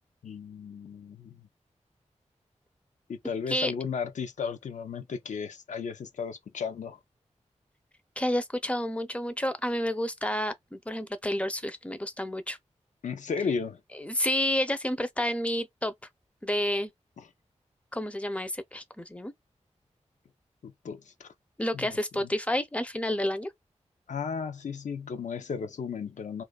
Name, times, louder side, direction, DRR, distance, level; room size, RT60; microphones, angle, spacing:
voice 1, 0.2-1.5 3.2-7.0 13.0-13.8 20.6-21.3 21.7-22.3 24.1-26.4, left 6 dB, 80° left, 0.4 m, -34 dB
voice 2, 8.2-12.6 14.0-15.9 16.4-16.9 17.9-19.3 21.6-23.5, left 1 dB, 10° left, 0.5 m, -30 dB
2.4 x 2.3 x 2.2 m
wide cardioid pair, 70°, 12 cm